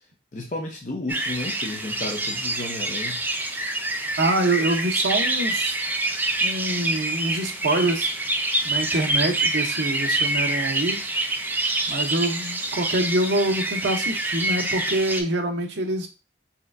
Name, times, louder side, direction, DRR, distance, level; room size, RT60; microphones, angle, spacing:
voice 1, 0.3-3.2, left 2 dB, 45° left, 0 dB, 0.6 m, -32 dB
sound 1, 1.1-15.2, right 2 dB, 10° right, 0.4 m, -26 dB
voice 2, 4.2-5.8 6.4-8.1 8.6-11.0 11.9-16.1, right 1 dB, 75° right, 4 dB, 0.8 m, -25 dB
4.3 x 3.4 x 2.5 m, 0.30 s
head